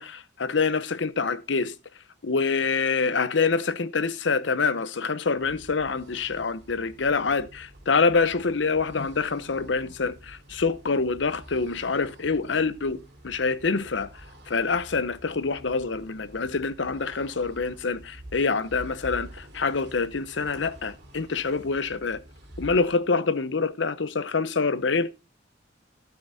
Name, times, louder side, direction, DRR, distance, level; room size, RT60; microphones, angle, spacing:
voice 1, 0.0-1.7 2.2-13.0 13.2-14.1 14.5-22.2 22.6-25.1, left 4 dB, 80° left, 0.8 m, -26 dB
sound 1, 5.3-23.1, right 1 dB, 60° right, 2.9 m, -48 dB
12.5 x 7.7 x 4.1 m
head